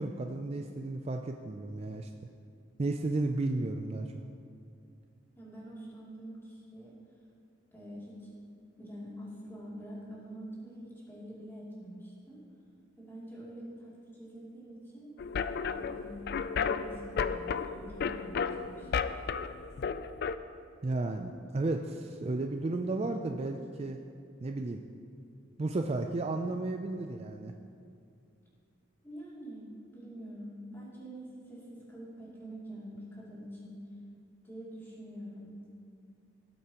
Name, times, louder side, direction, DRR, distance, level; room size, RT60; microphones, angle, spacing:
voice 1, 0.0-2.1 2.8-4.1 20.8-24.0 24.4-24.8 25.6-27.5, right 2 dB, 30° right, 4 dB, 0.4 m, -33 dB
voice 2, 5.4-7.0 7.7-8.3 8.8-12.4 13.0-15.1 15.7-19.1 29.0-33.8 34.4-35.7, right 1 dB, 10° left, -8 dB, 2.7 m, -46 dB
sound 1, 15.2-20.4, left 6 dB, 50° left, 0.3 m, -33 dB
17.5 x 8.2 x 2.9 m, 2.4 s
head